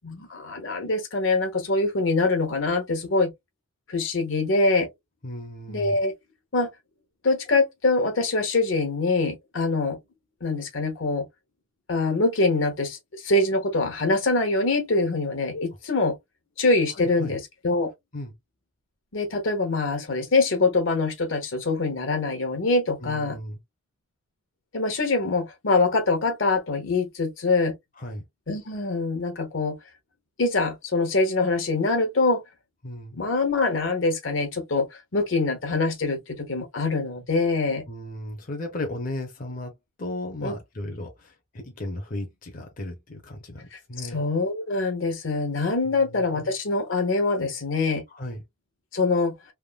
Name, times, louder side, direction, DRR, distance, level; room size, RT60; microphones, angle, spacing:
voice 1, 0.0-3.3 3.9-4.9 5.7-6.1 6.5-6.7 7.2-10.0 10.4-11.3 11.9-13.0 13.2-16.2 16.6-17.9 19.1-23.4 24.7-27.7 28.5-29.8 30.4-32.4 33.1-34.9 35.1-37.8 40.4-40.5 44.1-48.0 48.9-49.3, left 3 dB, 80° left, 1.1 m, -24 dB
voice 2, 5.2-6.0 16.9-17.3 18.1-18.3 23.0-23.6 28.0-28.2 32.8-33.2 37.9-39.7 40.0-44.2 45.9-46.5 48.1-48.4, left 1 dB, 45° left, 0.7 m, -35 dB
3.5 x 2.1 x 2.3 m
head